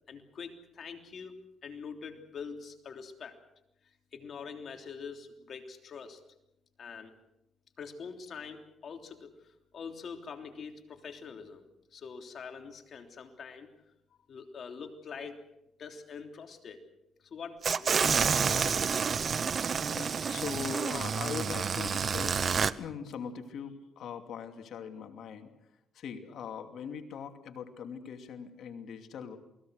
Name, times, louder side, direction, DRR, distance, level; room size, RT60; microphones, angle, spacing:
voice 1, 0.1-3.4 4.1-6.2 6.8-7.1 7.8-13.7 14.3-15.4 15.8-16.8 17.2-19.2, left 5 dB, 55° left, 5 dB, 3.3 m, -44 dB
sound 1, 17.6-22.7, right 6 dB, 45° right, 0.9 m, -29 dB
voice 2, 19.8-22.4 22.8-25.5 25.9-29.4, left 7 dB, 70° left, 6 dB, 2.7 m, -41 dB
28.5 x 20.0 x 6.5 m, 0.87 s
cardioid pair, 90°, 0 cm